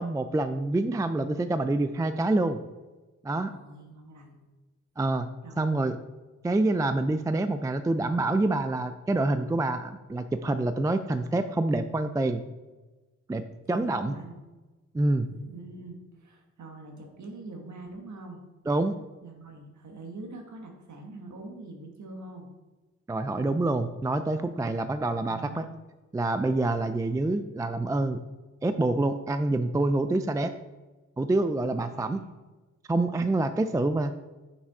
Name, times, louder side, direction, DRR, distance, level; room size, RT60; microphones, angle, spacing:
voice 1, 0.0-2.6 3.2-3.5 5.0-5.3 5.6-6.0 6.4-12.4 13.3-14.1 14.9-15.3 18.7-19.0 23.1-25.6 26.1-28.2 28.6-30.5 31.2-32.2 32.9-34.1, right 2 dB, 10° right, 10 dB, 0.3 m, -26 dB
voice 2, 3.4-4.4 5.4-5.8 13.6-14.4 15.2-18.4 19.2-22.5 24.9-25.8 31.7-32.4 33.4-33.8, right 2 dB, 75° right, 2 dB, 1.5 m, -44 dB
6.7 x 5.8 x 4.8 m, 1.2 s
wide cardioid pair, 110°, 30 cm